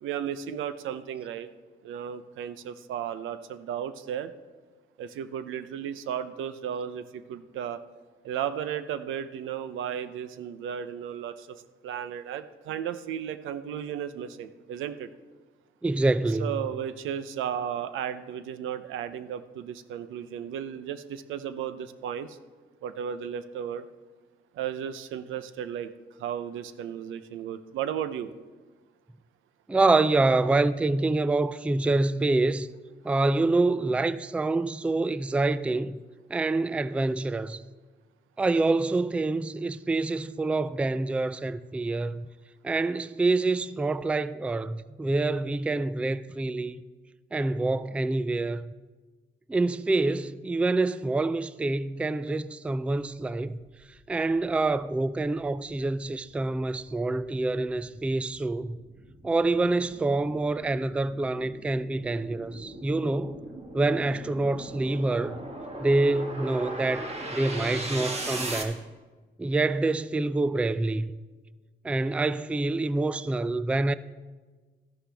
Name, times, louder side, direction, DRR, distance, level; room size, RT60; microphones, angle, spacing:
voice 1, 0.0-1.5 1.8-4.3 5.0-7.8 8.2-15.1 16.4-22.4 22.8-23.8 24.5-25.9 26.2-28.3, right 9 dB, 80° right, 0.7 m, -34 dB
voice 2, 15.8-16.7 29.7-32.7 33.0-36.0 36.3-37.6 38.4-42.3 42.6-46.8 47.3-48.7 49.5-53.6 54.1-58.8 59.2-63.4 63.7-65.4 65.8-68.8 69.4-71.1 71.8-73.9, right 2 dB, 5° right, 0.3 m, -26 dB
sound 1, 53.9-54.0 54.5-68.6, right 2 dB, 30° right, 1.7 m, -39 dB
13.5 x 11.0 x 3.4 m
cardioid pair, 90°, 20 cm